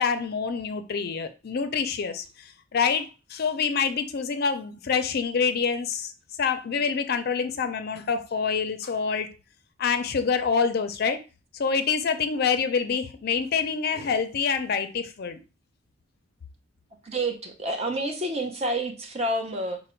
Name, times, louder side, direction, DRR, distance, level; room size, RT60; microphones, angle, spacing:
voice 1, 0.0-6.1 6.4-9.3 9.8-11.2 11.5-15.4, left 5 dB, 50° left, 0.4 m, -26 dB
voice 2, 17.0-19.8, right 1 dB, 30° right, 0.7 m, -29 dB
4.9 x 2.1 x 4.4 m
head